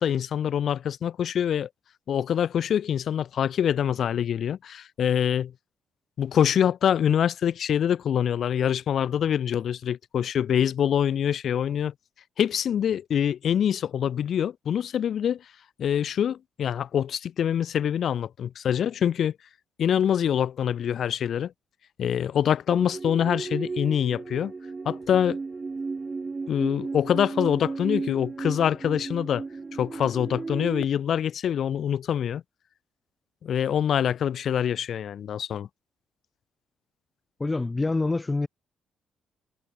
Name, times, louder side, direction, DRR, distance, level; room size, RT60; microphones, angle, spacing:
voice 1, 0.0-1.7 2.1-5.5 6.2-11.9 12.4-15.4 15.8-19.3 19.8-21.5 22.0-24.5 24.9-25.4 26.5-29.4 29.7-32.4 33.4-35.7, left 9 dB, 60° left, 2.3 m, -25 dB
sound 1, 22.7-30.9, right 4 dB, 30° right, 4.2 m, -34 dB
voice 2, 37.4-38.5, left 3 dB, 20° left, 1.1 m, -26 dB
cardioid pair, 90°, 0 cm